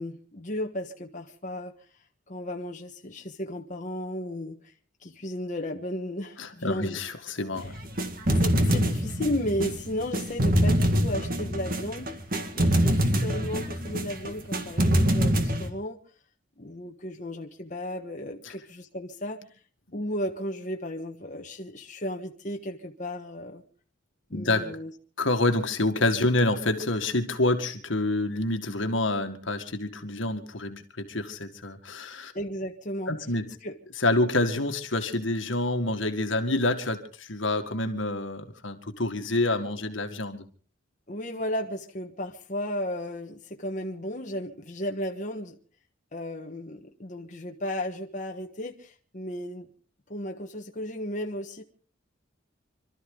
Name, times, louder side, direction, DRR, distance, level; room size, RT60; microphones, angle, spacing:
voice 1, 0.0-1.7 2.3-4.6 5.0-7.0 7.6-7.7 8.4-12.1 12.5-16.0 16.6-19.4 19.9-23.6 24.3-24.9 32.3-33.1 33.6-33.7 41.1-45.5 46.1-49.7 50.1-51.6, left 1 dB, 40° left, 1.4 m, -34 dB
voice 2, 6.4-7.8 18.4-18.5 24.3-24.8 25.2-32.3 33.1-33.6 34.0-40.5, left 2 dB, 75° left, 1.9 m, -27 dB
sound 1, 7.6-15.7, equal, 45° right, 2.0 m, -25 dB
26.5 x 13.0 x 3.9 m
head